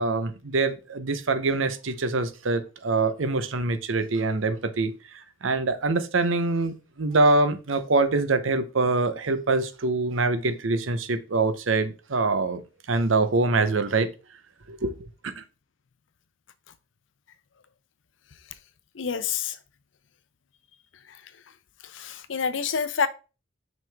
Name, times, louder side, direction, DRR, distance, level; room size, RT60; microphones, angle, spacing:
voice 1, 0.0-4.9 5.4-12.6 12.9-14.1 14.7-14.9 15.2-15.4, right 3 dB, 90° right, 0.8 m, -24 dB
voice 2, 19.0-19.5 21.9-23.1, left 6 dB, 70° left, 0.6 m, -27 dB
6.1 x 5.3 x 3.4 m
head